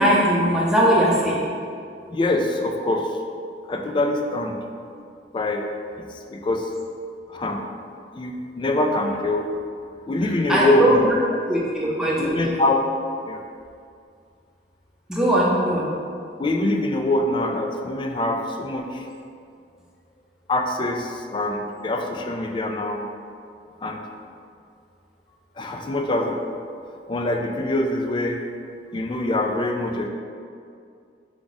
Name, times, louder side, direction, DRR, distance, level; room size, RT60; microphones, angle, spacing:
voice 1, 0.0-1.4 10.5-11.0 11.5-12.5 15.1-15.9, equal, 5° right, -6 dB, 0.7 m, -20 dB
voice 2, 2.1-3.2 3.7-4.6 5.3-5.7 6.0-6.7 7.3-7.6 8.1-9.5 10.1-11.4 12.2-12.8 13.3-13.4 16.4-19.1 20.5-23.1 23.8-24.1 25.6-26.4 27.1-28.4 28.9-30.1, left 1 dB, 25° left, 3 dB, 0.3 m, -24 dB
4.7 x 2.4 x 4.0 m, 2.4 s
head